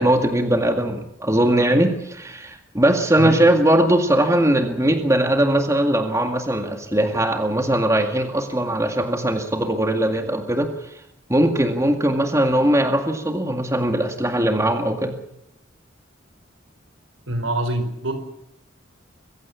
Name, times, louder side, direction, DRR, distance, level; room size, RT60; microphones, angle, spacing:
voice 1, 0.0-10.7 11.3-15.2, right 1 dB, 15° right, 5 dB, 2.0 m, -20 dB
voice 2, 17.3-18.1, right 1 dB, 85° right, 8 dB, 4.8 m, -24 dB
23.0 x 16.0 x 8.6 m, 0.80 s
head